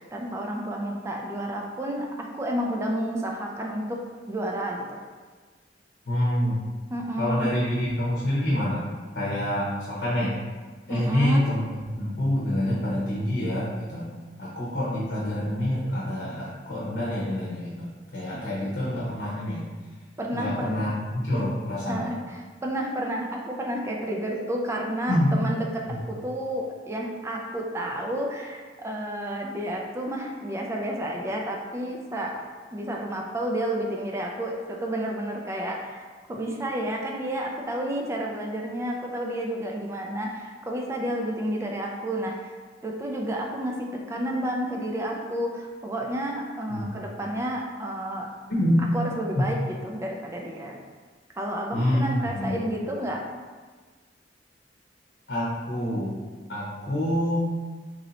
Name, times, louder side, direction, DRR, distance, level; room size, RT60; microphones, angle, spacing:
voice 1, 0.0-4.0 4.3-5.0 6.9-7.5 10.9-11.4 18.3-18.4 20.2-20.8 21.9-32.3 32.7-42.5 42.8-48.3 48.8-50.7 51.4-53.2, right 1 dB, 15° right, -1 dB, 0.4 m, -31 dB
voice 2, 6.1-6.6 7.2-8.9 9.1-10.3 10.9-14.1 14.4-19.7 20.3-22.1 25.1-25.3 25.9-26.0 46.7-46.9 48.5-48.9 51.7-52.7 55.3-56.1 56.5-57.4, left 1 dB, 65° left, -7 dB, 0.9 m, -27 dB
3.1 x 2.8 x 4.0 m, 1.4 s
head